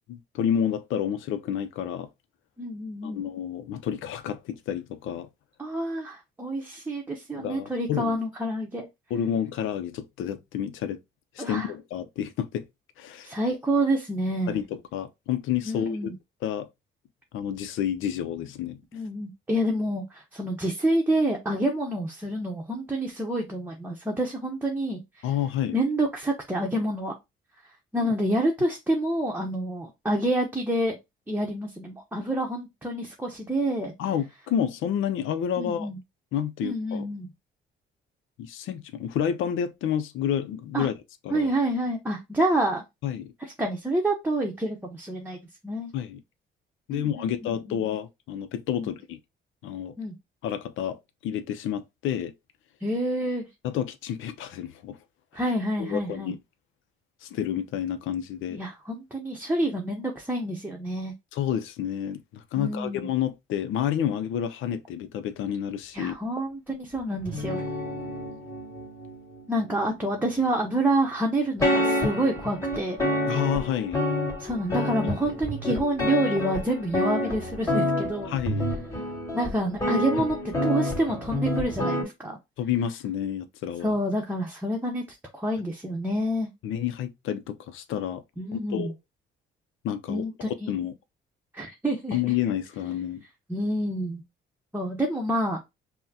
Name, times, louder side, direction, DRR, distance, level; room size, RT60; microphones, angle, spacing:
voice 1, 0.0-2.1 3.0-5.3 7.3-8.2 9.1-11.0 11.4-12.7 13.0-13.3 14.5-16.1 16.4-16.7 17.3-18.8 25.2-25.8 28.0-28.1 34.0-35.9 36.3-37.1 38.4-40.9 41.2-41.5 43.0-43.3 45.9-46.2 46.9-49.2 49.6-49.9 50.4-52.3 53.6-55.0 55.8-56.4 57.2-58.6 61.3-66.1 73.3-74.0 78.3-78.7 82.6-83.9 86.6-88.2 88.5-88.9 89.8-90.9 92.1-93.2, left 9 dB, 80° left, 0.5 m, -29 dB
voice 2, 2.6-3.2 5.6-8.9 11.4-11.7 13.2-14.6 15.7-16.2 18.9-25.2 25.7-27.1 27.9-31.0 31.3-33.9 35.6-36.0 36.6-37.3 40.7-40.9 41.3-42.8 43.4-45.4 45.6-45.9 46.9-47.8 48.8-48.9 50.0-50.1 52.8-53.5 55.3-56.3 58.5-61.1 62.6-63.1 65.9-67.6 69.5-73.0 74.4-78.3 79.3-82.4 83.8-85.0 85.3-86.5 88.4-88.9 90.1-90.7 91.5-92.2 93.5-94.2 94.7-95.6, right 1 dB, 10° right, 0.8 m, -28 dB
sound 1, 67.2-70.8 71.6-82.0, left 1 dB, 15° left, 2.0 m, -28 dB
5.5 x 2.1 x 2.7 m
cardioid pair, 90°, 20 cm